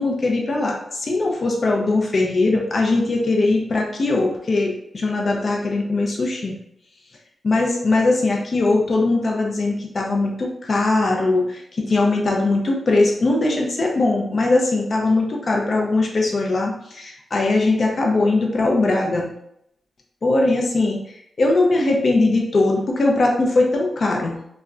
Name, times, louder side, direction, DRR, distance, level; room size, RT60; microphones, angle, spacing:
voice 1, 0.0-6.5 7.4-19.3 20.2-24.4, left 2 dB, 55° left, -1 dB, 0.5 m, -20 dB
2.2 x 2.1 x 3.6 m, 0.76 s
cardioid pair, 50°, 0 cm